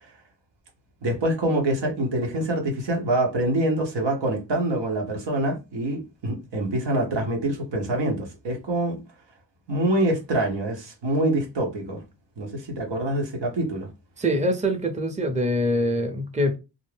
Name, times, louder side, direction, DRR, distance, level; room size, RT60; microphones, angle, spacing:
voice 1, 1.0-9.0 9.7-12.0 12.4-13.9, right 1 dB, 90° right, 0.9 m, -25 dB
voice 2, 14.2-16.6, equal, 15° right, 0.6 m, -24 dB
2.5 x 2.1 x 3.2 m
cardioid pair, 55°, 41 cm